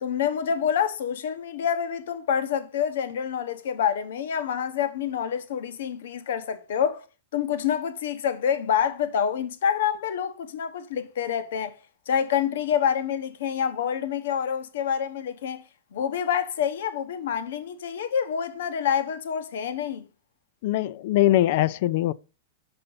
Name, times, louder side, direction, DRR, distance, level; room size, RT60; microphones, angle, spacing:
voice 1, 0.0-7.0 7.3-11.8 12.1-15.6 15.9-20.0, left 8 dB, 75° left, 0.9 m, -27 dB
voice 2, 20.6-22.1, left 14 dB, 60° left, 0.4 m, -22 dB
5.8 x 5.2 x 5.5 m
hypercardioid pair, 135°, 0 cm